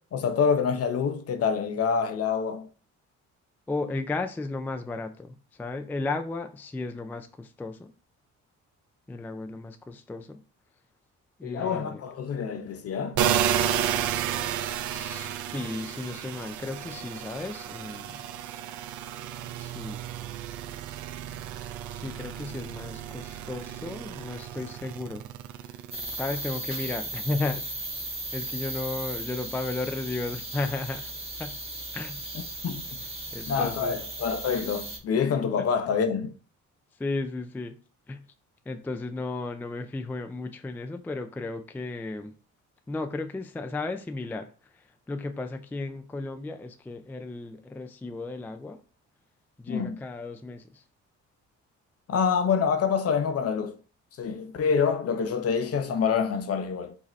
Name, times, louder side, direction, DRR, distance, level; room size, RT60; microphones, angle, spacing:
voice 1, 0.1-2.7 11.4-13.3 32.6-32.9 33.5-36.3 49.7-50.0 52.1-53.8 54.2-57.0, left 6 dB, 50° left, 0.7 m, -26 dB
voice 2, 3.7-7.9 9.1-10.4 11.4-12.0 14.9-18.2 19.5-20.0 21.9-25.3 25.5-25.8 26.1-27.7 28.3-31.1 31.4-31.6 31.9-32.3 33.3-34.0 37.0-37.8 38.1-38.2 38.7-42.3 42.9-48.8 49.6-50.8, left 3 dB, 5° left, 0.3 m, -34 dB
sound 1, 13.2-26.5 26.9-29.8, right 10 dB, 75° right, 0.5 m, -32 dB
sound 2, 25.9-35.0, right 2 dB, 20° right, 1.3 m, -36 dB
4.9 x 2.8 x 3.1 m
cardioid pair, 90°, 30 cm